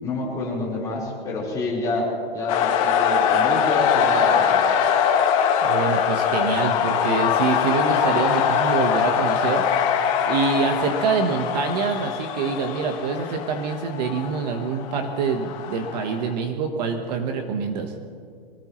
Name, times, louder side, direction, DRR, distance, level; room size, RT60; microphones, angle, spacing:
voice 1, 0.0-4.6, left 2 dB, 10° left, -7 dB, 4.3 m, -28 dB
sound 1, 2.5-16.3, left 7 dB, 35° left, 1.6 m, -22 dB
voice 2, 5.6-9.7 10.2-17.9, right 5 dB, 45° right, 5 dB, 1.3 m, -25 dB
24.5 x 18.0 x 3.2 m, 2.2 s
supercardioid pair, 170°, 30 cm